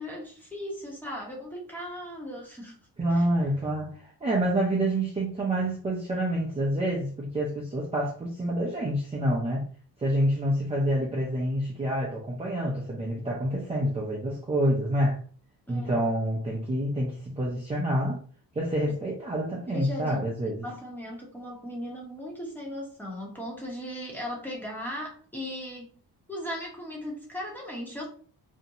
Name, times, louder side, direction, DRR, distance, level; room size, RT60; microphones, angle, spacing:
voice 1, 0.0-2.8 3.1-3.3 15.7-16.1 19.7-20.3 20.6-26.0 26.3-28.1, left 1 dB, 5° left, 0.9 m, -37 dB
voice 2, 3.0-9.7 10.0-15.2 15.7-18.2 18.5-20.7, right 1 dB, 15° right, 0.6 m, -27 dB
2.6 x 2.1 x 2.8 m
cardioid pair, 110°, 41 cm